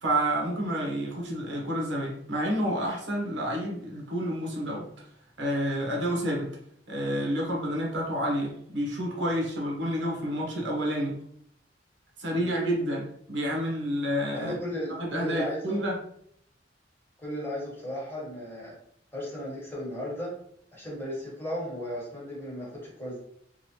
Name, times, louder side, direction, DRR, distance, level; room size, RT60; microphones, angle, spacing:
voice 1, 0.0-4.9 5.4-6.5 6.9-11.2 12.2-14.6 15.0-16.0, equal, 80° right, -2 dB, 0.9 m, -29 dB
voice 2, 14.3-15.8 17.2-18.8 19.1-20.3 20.7-23.2, equal, 15° left, -5 dB, 1.1 m, -35 dB
3.0 x 2.6 x 2.8 m, 0.69 s
head